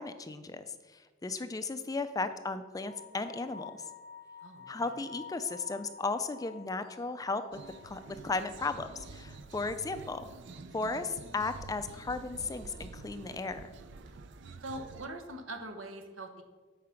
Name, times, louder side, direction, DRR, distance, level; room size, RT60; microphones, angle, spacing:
voice 1, 0.0-3.7 4.7-7.4 7.8-10.2 10.7-13.7, left 3 dB, 20° left, 11 dB, 0.3 m, -35 dB
sound 1, 2.8-10.5 10.8-10.9 14.1-14.2, left 6 dB, 40° right, 1.6 m, -51 dB
voice 2, 4.4-4.9 14.6-16.4, right 1 dB, 80° right, 5 dB, 1.2 m, -42 dB
sound 2, 7.5-15.1, right 3 dB, 60° right, 0.5 m, -48 dB
8.4 x 4.9 x 5.8 m, 1.4 s
head